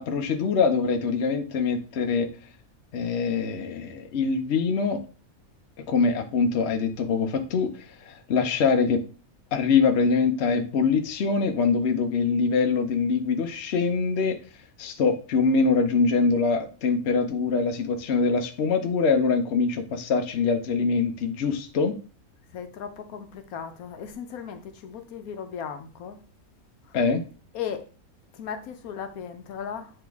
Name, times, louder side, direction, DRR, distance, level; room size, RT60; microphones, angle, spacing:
voice 1, 0.0-2.3 2.9-5.0 5.9-7.7 8.0-9.0 9.5-14.4 14.8-21.9 26.9-27.2, left 4 dB, 55° left, 0.9 m, -24 dB
voice 2, 22.5-26.2 27.5-27.8 28.4-29.9, left 7 dB, 80° left, 1.2 m, -36 dB
8.1 x 3.4 x 3.5 m
omnidirectional pair, 1.5 m